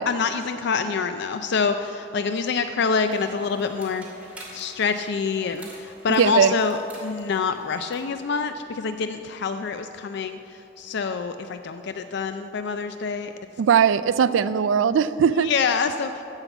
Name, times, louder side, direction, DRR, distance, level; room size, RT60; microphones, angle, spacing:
voice 1, 0.1-4.0 4.5-10.4 10.8-13.3 15.4-16.2, left 5 dB, 60° left, 9 dB, 0.4 m, -26 dB
sound 1, 3.1-8.1, right 1 dB, 5° right, 2.4 m, -47 dB
voice 2, 6.2-6.5 13.6-15.5, right 7 dB, 75° right, 14 dB, 0.3 m, -19 dB
13.5 x 5.7 x 8.0 m, 2.8 s
head